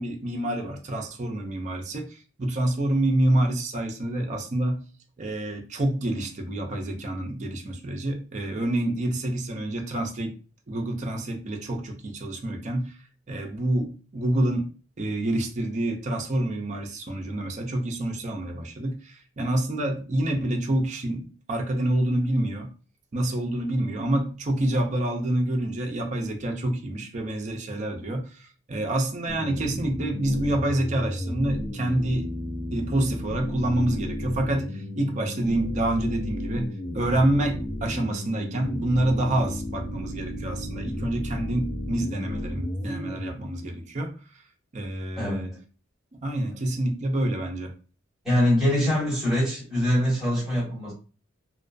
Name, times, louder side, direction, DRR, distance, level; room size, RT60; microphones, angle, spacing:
voice 1, 0.0-4.8 5.2-10.3 10.7-12.9 13.3-14.7 15.0-22.7 23.1-32.3 32.7-44.2 44.7-45.5 46.1-47.7, right 1 dB, 35° right, 2 dB, 0.4 m, -27 dB
sound 1, 29.3-43.3, left 1 dB, 35° left, 0.4 m, -33 dB
voice 2, 45.2-45.6 48.2-50.9, left 1 dB, ahead, -9 dB, 1.4 m, -23 dB
2.4 x 2.2 x 2.4 m, 0.36 s
head